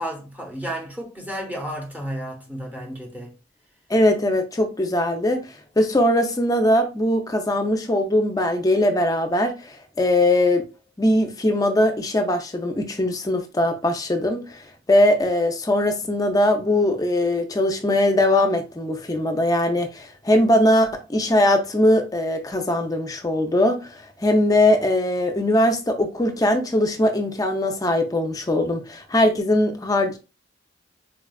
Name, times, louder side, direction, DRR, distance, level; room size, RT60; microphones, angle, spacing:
voice 1, 0.0-3.3, equal, 10° right, 0.8 m, -32 dB
voice 2, 3.9-5.5 5.8-10.6 11.0-14.6 14.9-30.2, left 1 dB, 20° left, 0.5 m, -20 dB
4.0 x 2.3 x 2.2 m
head